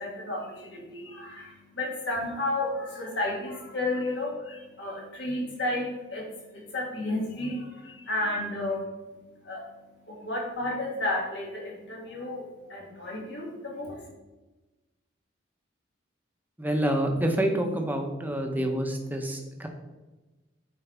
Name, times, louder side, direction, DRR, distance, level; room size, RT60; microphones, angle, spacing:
voice 1, 0.0-8.9 9.2-14.1, left 2 dB, 65° left, -3 dB, 2.3 m, -32 dB
voice 2, 16.6-19.7, right 1 dB, 10° right, 3 dB, 0.9 m, -27 dB
9.3 x 4.8 x 3.5 m, 1.1 s
head